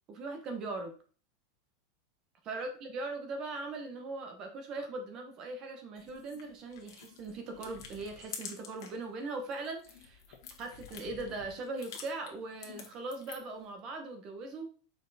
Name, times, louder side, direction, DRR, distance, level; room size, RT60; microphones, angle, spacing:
voice 1, 0.1-0.9 2.4-10.2 10.6-14.7, right 3 dB, 25° right, 5 dB, 1.1 m, -40 dB
sound 1, 6.0-9.0 9.4-13.6, left 7 dB, 70° left, 1.6 m, -48 dB
6.3 x 4.5 x 4.2 m, 0.39 s
supercardioid pair, 180°, 2 cm